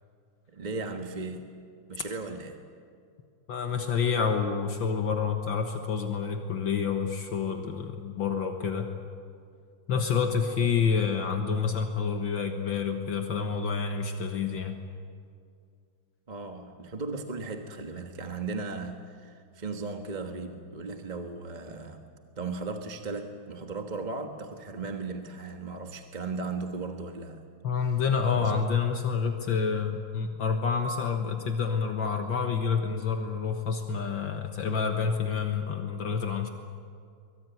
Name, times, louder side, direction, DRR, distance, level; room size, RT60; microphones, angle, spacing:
voice 1, 0.5-1.5 1.9-2.6 16.3-22.0 22.4-27.4 28.3-28.6, right 3 dB, 25° right, 5 dB, 1.3 m, -36 dB
voice 2, 3.5-8.9 9.9-14.8 27.6-36.5, left 6 dB, 65° left, 5 dB, 2.1 m, -28 dB
24.0 x 23.0 x 9.3 m, 2.3 s
omnidirectional pair, 2.3 m